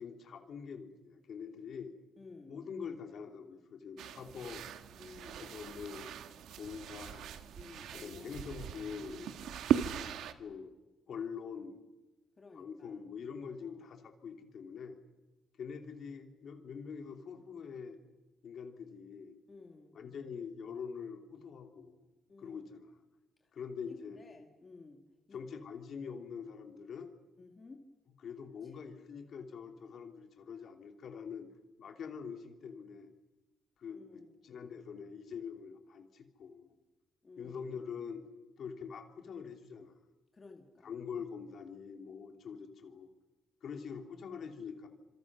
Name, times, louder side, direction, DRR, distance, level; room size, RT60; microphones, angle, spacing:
voice 1, 0.0-1.9 2.5-4.6 5.4-6.1 6.5-7.3 7.9-9.2 10.4-10.7 11.1-11.8 12.5-15.0 15.6-18.0 18.4-19.3 19.9-22.1 22.4-22.9 23.5-24.2 25.3-27.1 28.2-31.5 31.8-33.1 33.8-36.7 37.4-38.2 38.6-39.9 40.8-43.1 43.6-44.9, left 6 dB, 50° left, 5 dB, 2.9 m, -44 dB
voice 2, 2.2-2.7 5.0-5.5 7.6-8.5 9.1-10.1 12.4-13.0 13.6-13.8 19.5-19.9 22.3-22.6 23.9-25.0 25.3-25.4 27.4-27.8 33.9-34.5 37.2-37.6 40.3-40.9, left 3 dB, 20° left, 3 dB, 2.1 m, -54 dB
sound 1, 4.0-10.3, right 9 dB, 85° right, 1.5 m, -38 dB
29.5 x 27.0 x 6.2 m, 1.1 s
cardioid pair, 180°, 0 cm